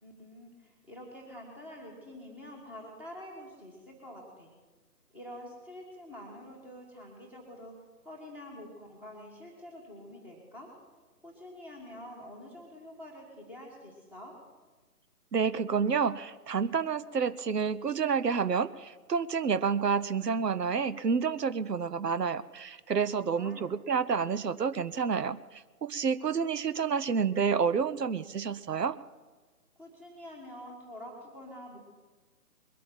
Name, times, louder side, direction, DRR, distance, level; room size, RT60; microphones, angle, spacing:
voice 1, 0.0-4.5 5.1-7.7 8.0-10.7 11.2-14.3 23.1-23.8 29.8-31.8, left 1 dB, 5° right, -1 dB, 1.5 m, -47 dB
voice 2, 15.3-29.0, right 6 dB, 85° right, 15 dB, 0.8 m, -29 dB
21.5 x 8.5 x 7.3 m, 1.3 s
figure-of-eight pair, 150°, 47 cm